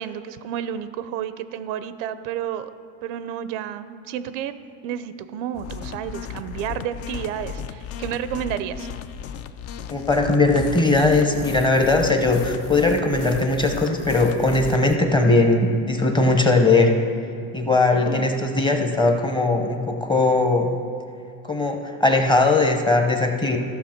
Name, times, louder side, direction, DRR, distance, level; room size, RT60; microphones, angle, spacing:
voice 1, 0.0-2.7 3.0-4.6 4.8-8.9 17.7-18.3, right 10 dB, 90° right, 12 dB, 0.6 m, -31 dB
sound 1, 5.5-15.0, left 8 dB, 45° left, 0.4 m, -35 dB
voice 2, 9.9-16.9 17.5-20.7 21.4-23.6, left 2 dB, 15° left, 4 dB, 0.8 m, -19 dB
14.0 x 6.0 x 4.4 m, 2.4 s
cardioid pair, 130°, 36 cm